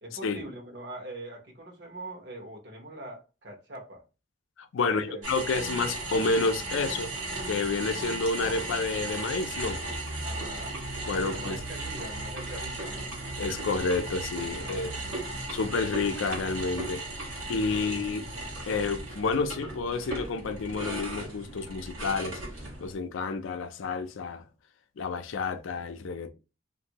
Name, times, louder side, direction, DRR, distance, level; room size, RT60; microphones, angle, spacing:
voice 1, 0.0-4.0 4.8-5.3 10.2-10.8 11.1-13.1 14.5-15.5, right 1 dB, 60° right, 1.0 m, -43 dB
voice 2, 4.6-7.1 7.5-9.8 11.0-11.6 13.4-14.9 15.5-18.2 18.7-22.4 22.8-24.4 25.0-26.3, left 4 dB, 80° left, 0.4 m, -30 dB
sound 1, 5.2-23.0, right 2 dB, 90° right, 1.2 m, -36 dB
2.6 x 2.5 x 2.8 m
head